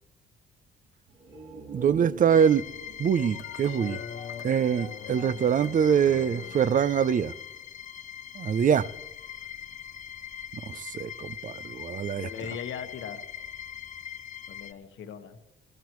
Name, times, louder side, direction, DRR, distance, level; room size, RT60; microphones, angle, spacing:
sound 1, 1.0-4.8 5.1-5.2, right 4 dB, 80° right, 3.6 m, -45 dB
voice 1, 1.7-2.7 3.0-4.0 4.4-7.3 8.4-8.9 10.5-12.3, right 8 dB, 40° right, 0.5 m, -24 dB
sound 2, 2.3-14.7, left 8 dB, 40° left, 0.5 m, -42 dB
sound 3, 3.2-7.5, left 8 dB, 90° left, 1.2 m, -43 dB
voice 2, 12.1-13.3 14.5-15.4, left 8 dB, 75° left, 1.3 m, -39 dB
20.0 x 17.0 x 3.1 m
cardioid pair, 90°, 20 cm